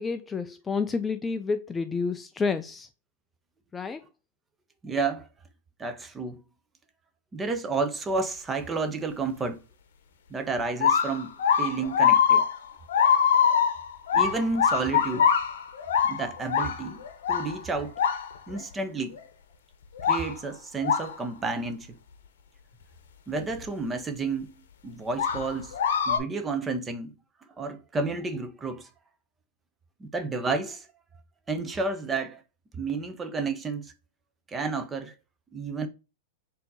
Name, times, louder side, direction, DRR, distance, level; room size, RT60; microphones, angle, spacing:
voice 1, 0.0-2.9 3.7-4.1, left 4 dB, 15° left, 0.3 m, -29 dB
voice 2, 4.8-5.3 5.8-6.4 7.3-9.6 10.3-12.4 14.1-15.3 16.0-17.0 17.3-17.9 18.5-19.2 20.1-22.0 23.3-24.5 24.8-25.7 26.1-27.1 27.6-28.9 30.0-30.9 31.5-32.4 32.7-33.9 34.5-35.1 35.5-35.9, right 3 dB, 15° right, 0.7 m, -31 dB
sound 1, 10.6-18.6 19.2-19.3 20.0-20.3 20.8-21.1 23.6-23.7 25.2-26.2, left 7 dB, 75° left, 0.7 m, -23 dB
4.3 x 2.8 x 3.9 m
hypercardioid pair, 115°, 0 cm